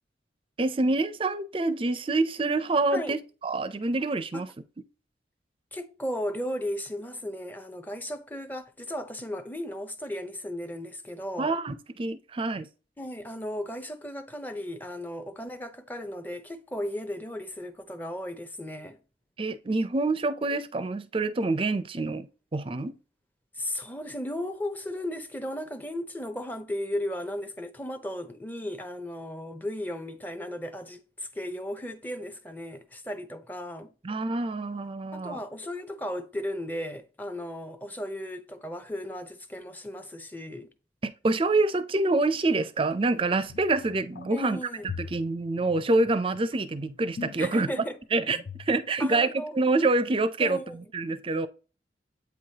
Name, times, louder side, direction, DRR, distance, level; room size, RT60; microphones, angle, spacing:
voice 1, 0.6-3.2 3.4-4.5 11.4-12.7 19.4-22.3 22.5-22.9 34.0-35.4 41.0-44.6 45.0-47.7 48.1-48.4 48.7-51.5, right 2 dB, 30° right, 0.5 m, -26 dB
voice 2, 5.7-11.5 13.0-19.0 23.6-33.9 35.1-40.7 44.3-44.9 47.4-48.0 49.0-49.6 50.4-50.8, left 1 dB, 10° left, 0.6 m, -35 dB
sound 1, 43.4-44.4 44.8-47.9 48.3-48.8 49.1-49.2, left 5 dB, 65° left, 0.7 m, -41 dB
8.3 x 4.7 x 2.8 m
head